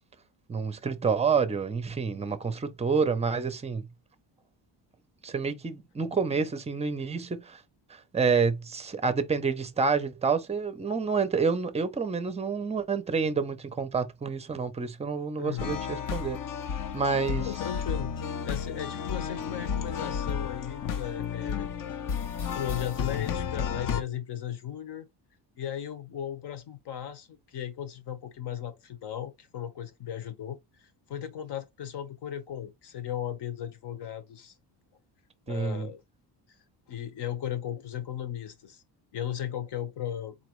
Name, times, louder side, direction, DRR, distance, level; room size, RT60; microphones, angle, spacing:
voice 1, 0.5-3.9 5.2-7.6 7.9-16.4 16.9-17.5 35.5-35.9, right 5 dB, 15° right, 0.5 m, -28 dB
voice 2, 15.3-15.8 16.9-18.1 18.4-22.0 22.4-25.1 25.6-34.6 35.5-36.0 36.9-38.8 39.1-40.4, left 10 dB, 70° left, 1.2 m, -37 dB
sound 1, 15.6-24.0, left 7 dB, 50° left, 0.7 m, -32 dB
4.2 x 2.9 x 3.1 m
cardioid pair, 145°, 42 cm